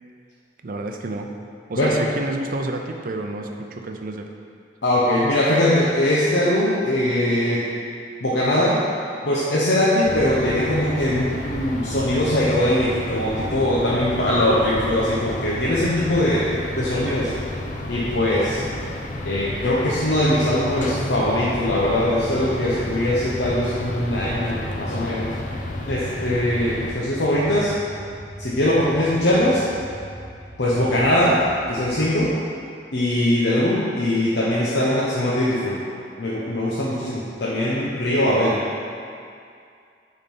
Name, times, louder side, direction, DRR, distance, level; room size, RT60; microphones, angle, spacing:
voice 1, 0.6-1.3 1.7-4.3, right 2 dB, 50° right, 4 dB, 0.5 m, -29 dB
voice 2, 4.8-7.7 8.2-8.8 9.2-16.5 16.7-17.3 17.9-18.6 19.2-25.3 25.9-27.7 28.4-29.6 30.6-31.4 31.7-32.3 32.9-35.8 36.2-38.6, left 1 dB, 75° left, -7 dB, 1.0 m, -21 dB
sound 1, 10.0-26.9, left 1 dB, 45° left, 0.7 m, -31 dB
sound 2, 22.3-32.3, equal, 30° left, 1.9 m, -39 dB
9.3 x 4.1 x 5.4 m, 2.4 s
head